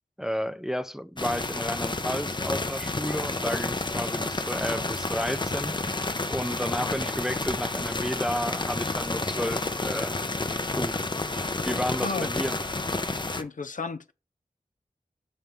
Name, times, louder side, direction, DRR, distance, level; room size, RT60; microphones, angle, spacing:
voice 1, 0.2-10.1 10.8-11.1 11.7-12.5, equal, 5° right, 0.5 m, -32 dB
sound 1, 1.2-13.4, left 2 dB, 30° left, 0.7 m, -30 dB
voice 2, 11.9-12.3 13.3-14.1, left 4 dB, 65° left, 0.6 m, -33 dB
7.4 x 5.2 x 3.5 m
cardioid pair, 45°, 14 cm